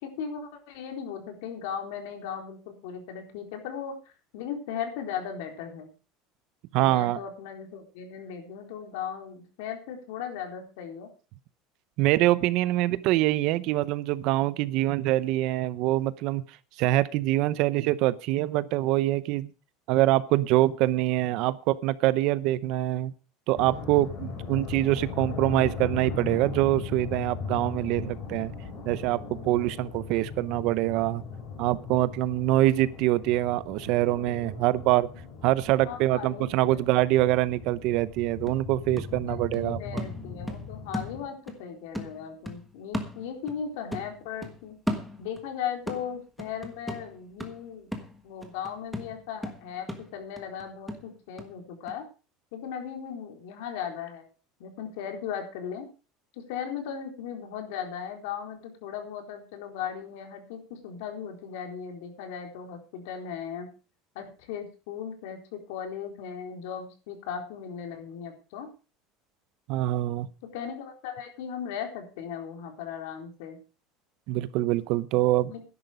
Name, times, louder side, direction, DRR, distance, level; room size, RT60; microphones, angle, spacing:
voice 1, 0.0-3.9 4.3-5.9 6.8-11.1 35.8-36.8 39.1-44.8 45.2-47.9 48.2-49.9 50.1-52.0 52.5-54.3 54.6-55.9 56.3-63.7 64.1-68.7 70.5-73.6 75.5-75.6, left 8 dB, 70° left, 3.9 m, -37 dB
voice 2, 6.7-7.2 12.0-16.4 16.8-19.5 19.9-23.1 23.5-28.5 28.9-31.2 31.6-35.1 35.4-40.0 69.7-70.3 74.3-75.5, right 16 dB, 45° right, 0.7 m, -25 dB
sound 1, 23.5-41.2, left 5 dB, 30° left, 4.3 m, -38 dB
sound 2, 38.0-38.1 38.5-41.6 41.9-43.7 43.9-45.5 45.9-51.5 51.9-52.0, equal, ahead, 1.5 m, -37 dB
12.5 x 11.0 x 5.0 m
cardioid pair, 175°, 0 cm